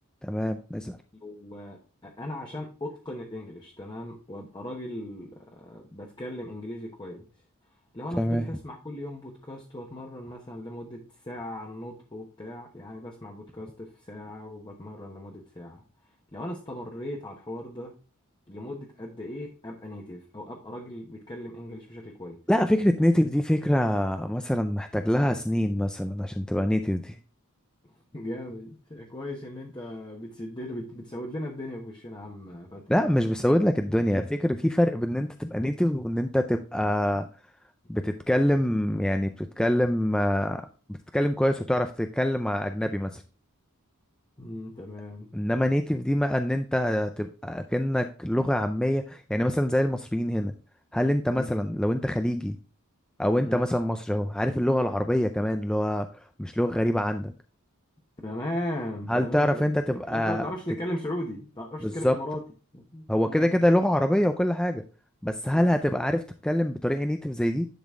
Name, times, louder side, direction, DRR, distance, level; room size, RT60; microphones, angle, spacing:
voice 1, 0.2-1.0 8.2-8.5 22.5-27.2 32.9-37.3 37.9-43.2 45.3-50.5 50.9-52.6 53.2-57.3 59.1-60.5 61.8-62.2 63.1-64.8 65.2-67.7, equal, 5° left, 7 dB, 0.3 m, -25 dB
voice 2, 1.2-7.3 7.9-15.8 16.3-17.9 18.5-22.4 28.1-32.8 44.4-45.3 51.3-51.6 53.4-53.7 58.2-62.4 62.7-63.6, left 1 dB, 20° left, -1 dB, 1.0 m, -37 dB
10.5 x 4.1 x 3.6 m, 0.36 s
head